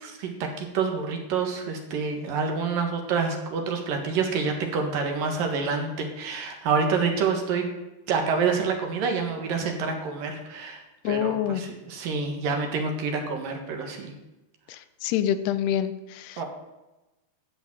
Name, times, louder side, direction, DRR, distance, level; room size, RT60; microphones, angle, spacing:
voice 1, 0.0-7.7 8.1-14.1 16.4-16.5, right 5 dB, 60° right, 3 dB, 3.1 m, -27 dB
voice 2, 11.0-11.6 14.7-16.4, left 10 dB, 80° left, 12 dB, 2.7 m, -27 dB
12.5 x 7.2 x 8.9 m, 1.0 s
omnidirectional pair, 4.7 m